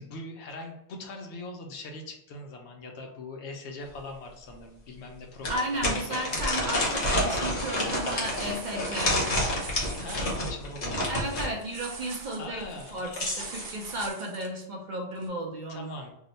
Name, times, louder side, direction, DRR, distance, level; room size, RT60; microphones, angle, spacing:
voice 1, 0.0-6.4 10.0-11.0 12.4-13.0 15.7-16.1, left 2 dB, 70° left, 2 dB, 0.9 m, -41 dB
sound 1, 3.9-4.0 4.5-4.6 5.4-11.5 12.8-13.7, left 1 dB, 40° left, 0.8 m, -29 dB
voice 2, 5.5-9.2 11.1-15.9, right 1 dB, 55° right, 0 dB, 0.5 m, -34 dB
sound 2, 7.0-7.1 7.4-10.4 11.6-14.5 15.2-15.3, right 4 dB, 90° right, 1.0 m, -44 dB
2.8 x 2.1 x 3.9 m, 0.82 s
omnidirectional pair, 1.2 m